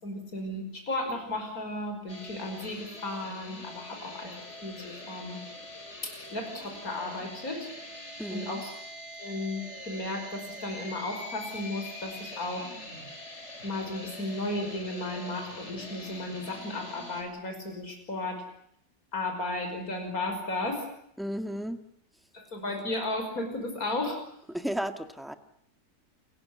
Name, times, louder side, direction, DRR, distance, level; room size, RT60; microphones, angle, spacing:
voice 1, 0.0-4.3 4.6-5.4 6.0-7.7 8.3-8.7 9.2-12.7 13.6-18.4 19.1-20.9 22.3-24.2, left 2 dB, 65° left, 5 dB, 6.1 m, -34 dB
sound 1, 2.1-17.2, left 1 dB, 45° left, 5.4 m, -43 dB
voice 2, 8.2-8.6 21.2-21.8 24.5-25.3, equal, ahead, 8 dB, 1.7 m, -34 dB
29.5 x 16.0 x 9.9 m, 0.71 s
omnidirectional pair, 1.7 m